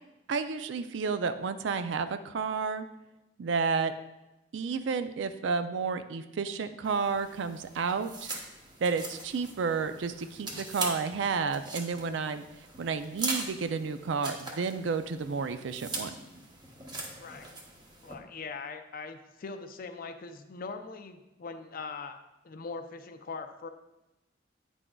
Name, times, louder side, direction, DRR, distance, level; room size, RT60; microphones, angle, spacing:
voice 1, 0.3-2.9 3.4-3.9 4.5-8.3 8.8-12.5 12.8-16.1, right 5 dB, 70° right, 10 dB, 0.4 m, -31 dB
sound 1, 6.8-18.1, right 2 dB, 25° right, 0.9 m, -41 dB
voice 2, 18.0-22.2 22.4-23.7, left 4 dB, 50° left, 7 dB, 0.5 m, -41 dB
8.9 x 6.1 x 2.3 m, 0.96 s
head